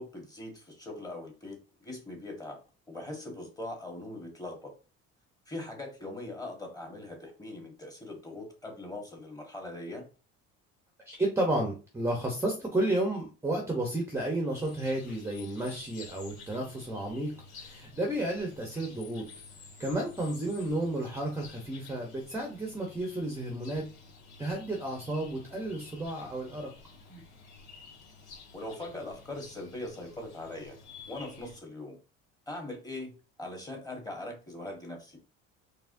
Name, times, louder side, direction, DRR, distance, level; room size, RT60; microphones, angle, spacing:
voice 1, 0.0-2.6 2.9-4.7 5.5-10.1 27.1-27.2 28.5-30.8 31.1-31.9 32.5-33.1 33.4-35.2, left 2 dB, 15° left, 1 dB, 1.5 m, -41 dB
voice 2, 11.1-19.3 19.8-23.9 24.4-26.7, right 1 dB, 10° right, 1 dB, 0.8 m, -32 dB
sound 1, 14.6-31.6, left 4 dB, 70° left, 1.8 m, -51 dB
4.7 x 3.3 x 2.6 m, 0.34 s
cardioid pair, 135°, 29 cm